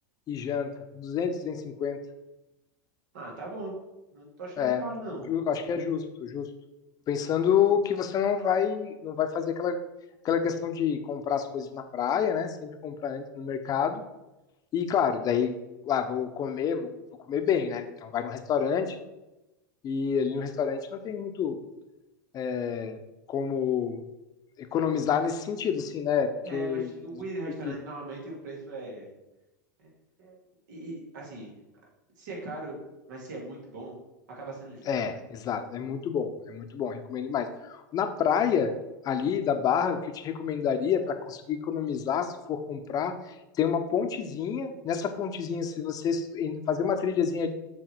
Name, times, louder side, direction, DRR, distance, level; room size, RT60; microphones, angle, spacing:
voice 1, 0.3-2.0 4.6-4.8 5.3-6.5 7.1-9.8 10.2-14.0 14.7-15.5 15.9-16.9 17.3-19.0 19.8-21.6 22.3-23.0 23.3-24.0 24.6-27.2 27.6-27.7 34.9-38.8 39.0-47.5, left 7 dB, 35° left, 7 dB, 0.8 m, -28 dB
voice 2, 3.1-3.7 4.1-5.3 26.4-29.1 29.8-29.9 30.2-30.4 30.7-31.5 32.2-32.8 33.1-34.0 34.4-34.9, right 2 dB, 70° right, -2 dB, 2.3 m, -39 dB
6.5 x 3.9 x 4.5 m, 0.98 s
hypercardioid pair, 90°, 10 cm